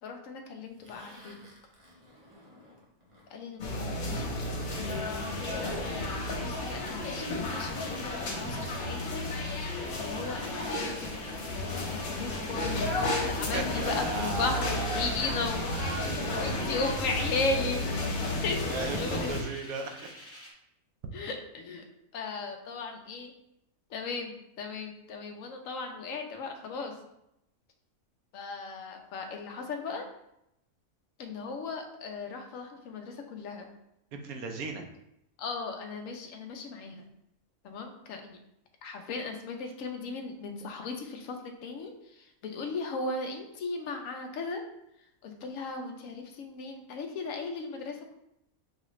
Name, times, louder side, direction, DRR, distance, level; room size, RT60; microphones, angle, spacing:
voice 1, 0.0-1.4 3.3-9.2 9.6-15.7 16.4-19.4 21.1-21.8 22.1-23.3 23.9-26.9 28.3-30.1 31.2-33.7 35.4-37.1 37.6-38.4 38.8-44.6 45.2-48.1, left 3 dB, 70° left, 3 dB, 1.0 m, -37 dB
Zipper (clothing), 0.8-3.3 3.6-3.9 4.5-6.1, left 1 dB, 25° right, 0.8 m, -47 dB
sound 1, 3.6-19.4, left 2 dB, 90° left, 1.5 m, -32 dB
sound 2, 4.7-20.5, left 1 dB, 15° left, 0.5 m, -49 dB
voice 2, 13.5-16.8 18.7-20.0 34.1-34.8, right 3 dB, 80° right, 4 dB, 1.1 m, -37 dB
6.6 x 2.4 x 3.0 m, 0.81 s
omnidirectional pair, 1.5 m